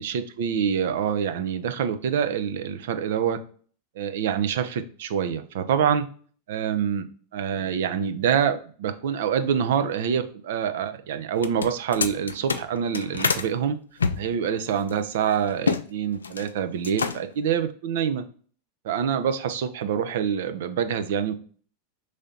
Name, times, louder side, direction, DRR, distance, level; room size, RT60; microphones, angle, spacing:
voice 1, 0.0-3.4 4.0-6.1 6.5-7.1 7.3-13.8 14.2-18.2 18.8-21.3, right 8 dB, 65° right, 9 dB, 0.5 m, -26 dB
sound 1, 11.3-13.5 14.0-15.8 16.1-16.5 16.8-17.4, left 5 dB, 85° left, 0.3 m, -27 dB
3.2 x 2.8 x 3.7 m, 0.43 s
hypercardioid pair, 95°, 0 cm